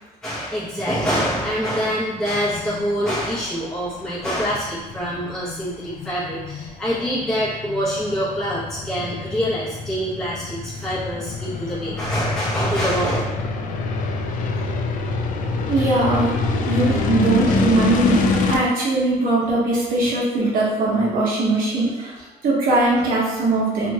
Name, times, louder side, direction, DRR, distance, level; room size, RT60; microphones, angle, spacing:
voice 1, 0.2-13.2, equal, 5° left, -11 dB, 0.9 m, -25 dB
sound 1, 0.8-18.6, left 3 dB, 50° left, 0.4 m, -26 dB
voice 2, 15.7-16.3 16.7-23.9, right 2 dB, 60° right, -6 dB, 1.0 m, -20 dB
2.9 x 2.9 x 2.3 m, 1.2 s
cardioid pair, 110°, 17 cm